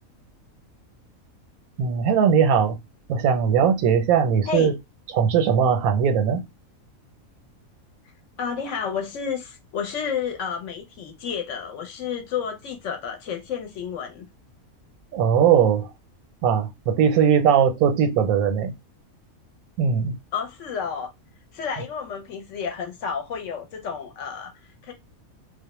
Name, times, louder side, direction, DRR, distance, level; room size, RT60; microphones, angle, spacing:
voice 1, 1.8-2.8 3.1-4.7 5.1-6.4 15.1-15.9 16.4-18.7 19.8-20.2, right 7 dB, 85° right, 1.0 m, -19 dB
voice 2, 8.4-14.3 20.3-21.1 21.5-24.9, left 7 dB, 65° left, 0.8 m, -31 dB
2.3 x 2.0 x 2.9 m
omnidirectional pair, 1.5 m